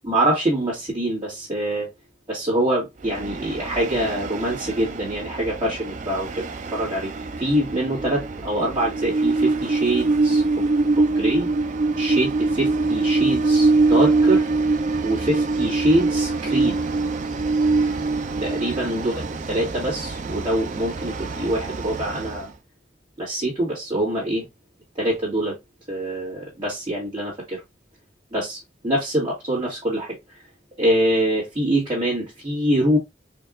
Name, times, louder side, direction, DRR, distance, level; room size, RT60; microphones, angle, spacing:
voice 1, 0.0-1.9 2.3-6.5 6.7-7.1 7.4-10.7 11.0-11.5 12.0-14.5 15.0-16.8 18.4-22.5 23.2-24.4 25.0-25.6 25.9-27.6 28.3-30.2 30.8-33.0, right 1 dB, 25° right, 1.9 m, -24 dB
Train, 3.0-22.5, right 3 dB, 45° right, 0.4 m, -24 dB
4.4 x 2.7 x 2.4 m
head